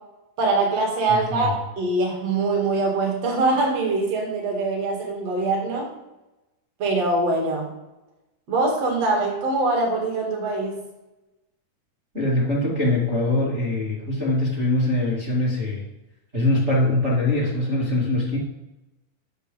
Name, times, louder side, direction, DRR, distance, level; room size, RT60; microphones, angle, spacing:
voice 1, 0.4-5.9 6.8-7.7 8.5-10.8, right 3 dB, 45° right, 0 dB, 2.5 m, -23 dB
voice 2, 1.1-1.5 12.1-15.8 16.3-18.4, left 2 dB, 30° right, -4 dB, 1.3 m, -23 dB
8.3 x 6.5 x 5.2 m, 0.99 s
omnidirectional pair, 5.0 m